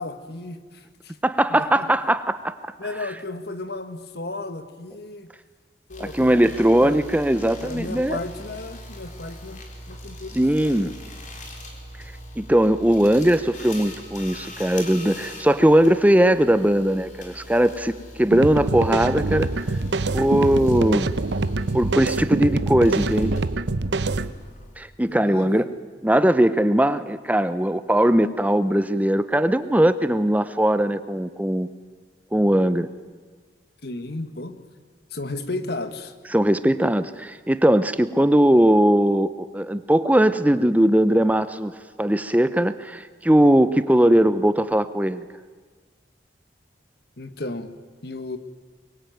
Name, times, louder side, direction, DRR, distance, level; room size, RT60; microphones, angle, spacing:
voice 1, 0.0-1.1 1.5-1.9 2.8-5.3 5.9-6.5 6.8-7.0 7.6-9.6 9.9-10.9 24.2-24.4 25.1-25.7 33.8-34.6 35.1-36.1 47.2-47.7 48.0-48.4, left 2 dB, 65° left, 10 dB, 1.7 m, -34 dB
voice 2, 1.2-2.5 3.0-3.1 6.0-8.2 10.3-10.9 12.4-19.5 20.1-21.1 21.7-23.4 24.8-25.7 26.0-31.7 32.3-32.9 36.3-41.7 42.0-45.2, right 1 dB, 10° right, 13 dB, 0.7 m, -19 dB
sound 1, 5.9-24.9, left 1 dB, 45° left, 4.0 m, -41 dB
sound 2, 18.3-24.3, right 2 dB, 85° right, 0.9 m, -25 dB
23.5 x 23.0 x 9.3 m, 1.5 s
head